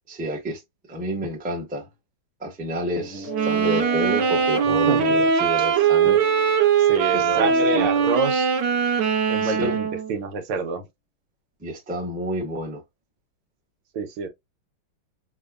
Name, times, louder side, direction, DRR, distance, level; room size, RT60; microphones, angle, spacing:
voice 1, 0.1-0.6 0.9-1.9 2.4-6.2 7.1-7.9 9.4-9.7 11.6-12.8, equal, 10° right, 0.4 m, -29 dB
sound 1, 3.0-9.0, left 5 dB, 75° left, 1.6 m, -40 dB
sound 2, 3.3-10.1, right 6 dB, 65° right, 1.3 m, -21 dB
voice 2, 4.6-5.2 6.8-8.5 9.3-10.9 13.9-14.3, right 4 dB, 85° right, 1.8 m, -28 dB
5.4 x 2.2 x 2.4 m
omnidirectional pair, 2.3 m